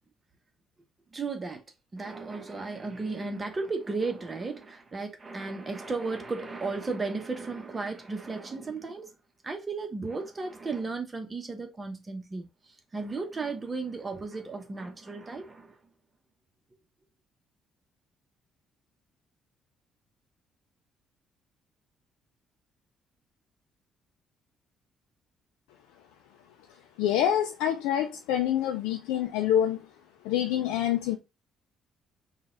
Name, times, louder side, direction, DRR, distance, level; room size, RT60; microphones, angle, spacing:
voice 1, 1.1-1.6 1.9-9.1 9.4-15.8, right 3 dB, 30° right, 0.9 m, -34 dB
voice 2, 27.0-29.9 30.2-31.2, left 10 dB, 90° left, 0.4 m, -26 dB
3.9 x 2.3 x 3.8 m
supercardioid pair, 65°, 0 cm